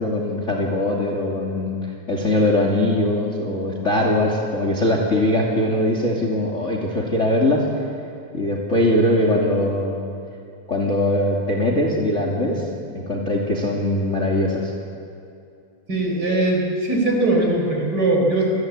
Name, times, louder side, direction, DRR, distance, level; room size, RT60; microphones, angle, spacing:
voice 1, 0.0-7.6 8.3-9.9 10.7-12.7 12.9-14.7, left 1 dB, 25° left, -1 dB, 2.7 m, -21 dB
voice 2, 15.9-18.5, right 2 dB, 30° right, 1 dB, 5.3 m, -20 dB
28.5 x 21.0 x 8.7 m, 2.6 s
omnidirectional pair, 3.5 m